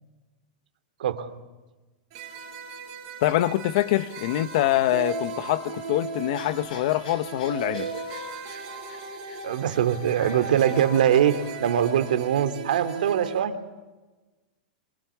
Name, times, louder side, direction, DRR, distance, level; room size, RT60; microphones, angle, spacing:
sound 1, 2.1-13.4, right 4 dB, 35° right, 4.8 m, -37 dB
voice 1, 3.2-7.9, left 14 dB, 40° left, 0.9 m, -24 dB
sound 2, 6.3-12.3, left 5 dB, 80° left, 7.3 m, -48 dB
voice 2, 9.4-13.6, right 9 dB, 70° right, 2.4 m, -22 dB
25.5 x 23.5 x 8.4 m
supercardioid pair, 180°, 5 cm